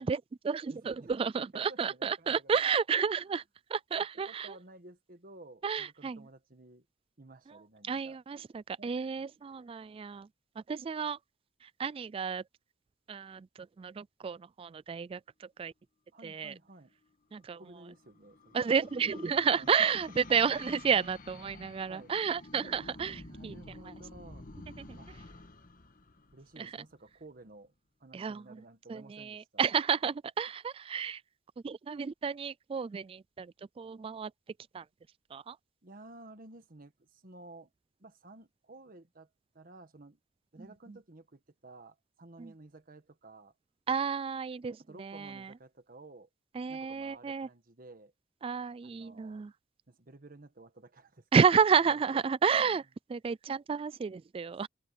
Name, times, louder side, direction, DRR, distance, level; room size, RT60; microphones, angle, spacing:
voice 1, 0.0-3.4 3.7-4.5 5.6-6.2 7.9-10.3 10.7-11.2 11.8-12.4 13.1-13.5 13.8-15.2 15.6-15.7 16.2-16.5 17.3-17.6 18.5-23.5 24.8-25.0 28.1-28.4 28.9-31.2 31.6-33.5 33.8-34.3 34.7-34.8 35.3-35.5 42.4-42.5 43.9-45.3 46.6-47.5 48.4-49.5 51.3-52.8 53.1-54.7, right 6 dB, 30° right, 0.3 m, -31 dB
voice 2, 0.7-2.6 3.2-3.4 4.1-6.9 7.2-8.2 8.8-9.2 16.1-16.9 17.5-18.6 19.5-20.2 21.9-22.1 22.9-24.5 24.9-25.1 26.3-27.7 28.0-29.7 35.8-37.7 38.0-39.3 39.5-40.2 40.5-43.5 44.8-46.3 46.7-48.1 48.8-49.4 49.9-51.2 51.9-52.0 52.5-52.8, right 2 dB, 50° right, 1.4 m, -53 dB
sound 1, 17.5-27.1, left 2 dB, 50° left, 1.4 m, -50 dB
head